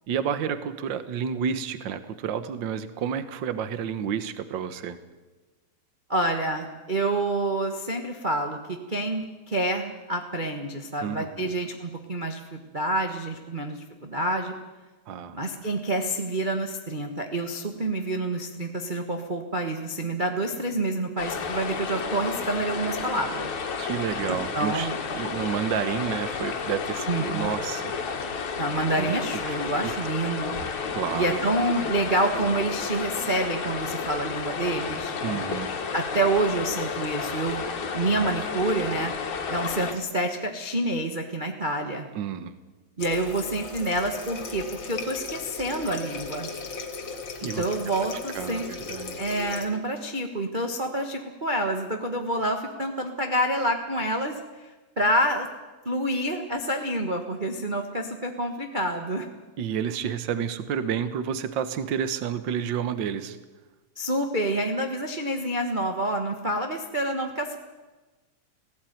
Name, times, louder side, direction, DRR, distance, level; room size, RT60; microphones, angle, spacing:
voice 1, 0.1-5.0 11.0-11.5 15.1-15.4 23.8-27.9 28.9-29.1 29.4-29.6 29.8-30.0 30.9-31.4 35.2-35.7 42.1-42.5 47.4-47.6 48.3-49.2 59.6-63.4, right 8 dB, 55° right, 12 dB, 1.4 m, -30 dB
voice 2, 6.1-14.5 15.3-23.5 24.3-25.0 27.1-27.5 28.6-30.6 31.1-35.1 35.9-37.6 37.9-39.1 39.5-42.1 43.0-46.5 47.6-48.7 49.2-54.3 55.0-55.5 55.8-59.3 64.0-67.6, right 1 dB, 35° right, 4 dB, 0.7 m, -28 dB
sound 1, 21.2-39.9, left 5 dB, 75° left, 3.2 m, -31 dB
Water tap faucet, 43.0-49.7, left 4 dB, 45° left, 2.2 m, -37 dB
17.0 x 16.5 x 9.3 m, 1.2 s
omnidirectional pair, 3.3 m